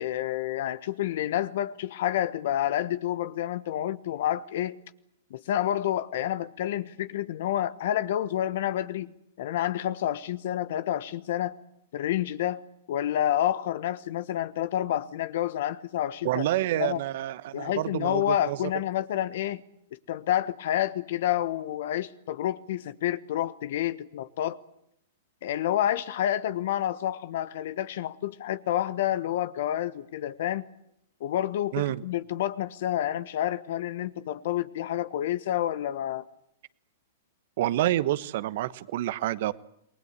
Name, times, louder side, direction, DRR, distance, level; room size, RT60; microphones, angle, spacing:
voice 1, 0.0-4.8 5.3-9.1 9.4-11.5 11.9-12.6 12.9-16.5 16.8-17.0 17.5-19.6 20.1-24.6 25.4-30.6 31.2-36.2, left 12 dB, 65° left, 1.2 m, -29 dB
voice 2, 16.2-18.6 31.7-32.0 37.6-39.5, right 14 dB, 60° right, 1.2 m, -28 dB
28.5 x 20.0 x 8.3 m
hypercardioid pair, 115°, 0 cm